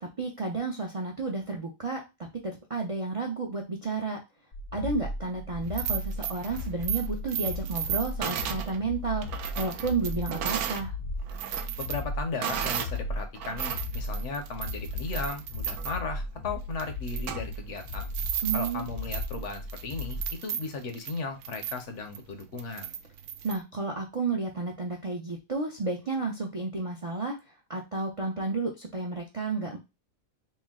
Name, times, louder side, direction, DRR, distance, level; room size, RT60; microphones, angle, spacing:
voice 1, 0.0-2.0 2.4-4.2 4.7-9.3 9.6-10.9 18.4-18.9 23.4-27.4 27.7-29.8, right 3 dB, 45° right, 0 dB, 0.4 m, -31 dB
sound 1, 4.5-20.4, left 2 dB, 80° left, 0.4 m, -36 dB
sound 2, 5.6-10.9 11.2-13.0 13.3-23.6, right 9 dB, 70° right, 1.0 m, -35 dB
voice 2, 11.8-18.1 18.5-22.9, left 4 dB, 55° left, 6 dB, 0.9 m, -36 dB
4.3 x 2.1 x 3.6 m, 0.24 s
omnidirectional pair, 1.7 m